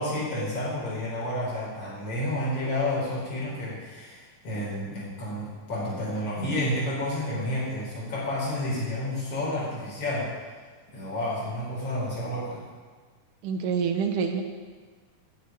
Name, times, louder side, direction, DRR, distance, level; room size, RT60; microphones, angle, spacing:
voice 1, 0.0-10.3 10.9-12.7, left 1 dB, 45° left, -6 dB, 5.5 m, -30 dB
voice 2, 13.4-14.4, right 6 dB, 80° right, 5 dB, 2.3 m, -26 dB
9.9 x 7.4 x 9.4 m, 1.4 s
omnidirectional pair, 3.8 m